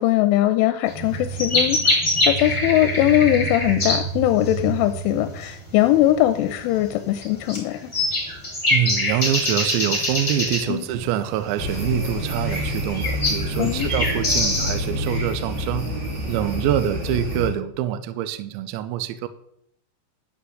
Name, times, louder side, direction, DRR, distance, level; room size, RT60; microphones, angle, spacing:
voice 1, 0.0-7.9 10.7-10.8 13.6-13.9, left 14 dB, 85° left, 9 dB, 3.0 m, -21 dB
sound 1, 0.9-15.0, left 1 dB, 15° left, 3.6 m, -25 dB
voice 2, 8.7-15.9 16.3-19.3, right 11 dB, 85° right, 12 dB, 2.7 m, -25 dB
sound 2, 11.6-17.5, equal, 45° right, 4.2 m, -27 dB
11.5 x 5.9 x 7.7 m, 0.73 s
omnidirectional pair, 5.7 m